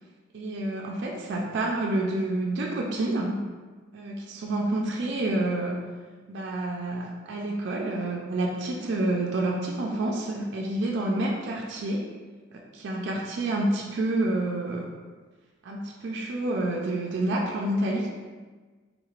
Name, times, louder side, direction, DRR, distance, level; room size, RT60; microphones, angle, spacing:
voice 1, 0.3-3.5 3.9-5.8 6.3-12.1 12.5-14.8 15.6-18.1, right 2 dB, 60° right, -1 dB, 0.4 m, -28 dB
3.5 x 3.1 x 2.4 m, 1.4 s
head